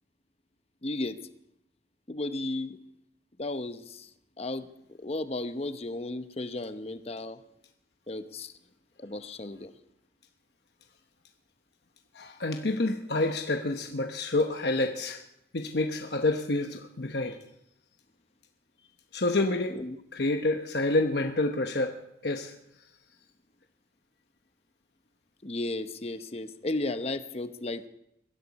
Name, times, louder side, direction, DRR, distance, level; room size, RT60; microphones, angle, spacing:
voice 1, 0.8-1.2 2.1-2.8 3.4-4.1 4.4-4.7 5.0-7.4 8.1-8.5 9.0-9.7 19.7-20.0 25.4-27.9, left 2 dB, 35° left, 10 dB, 0.8 m, -34 dB
voice 2, 12.1-15.2 15.5-17.4 19.1-19.8 20.1-22.0 22.2-22.5, left 2 dB, 65° left, 4 dB, 1.0 m, -28 dB
22.0 x 15.5 x 4.2 m, 0.80 s
head